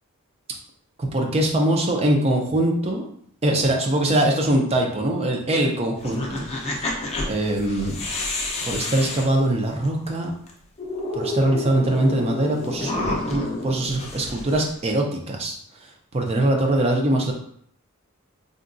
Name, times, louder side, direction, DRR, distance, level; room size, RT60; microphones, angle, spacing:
voice 1, 1.0-3.1 3.4-6.4 7.3-8.0 8.6-10.3 11.1-15.6 16.1-17.3, right 1 dB, 30° right, 1 dB, 0.5 m, -22 dB
sound 1, 6.0-10.1 10.5-10.6 10.8-14.9, left 2 dB, 30° left, 0.5 m, -30 dB
3.7 x 2.3 x 2.5 m, 0.65 s
head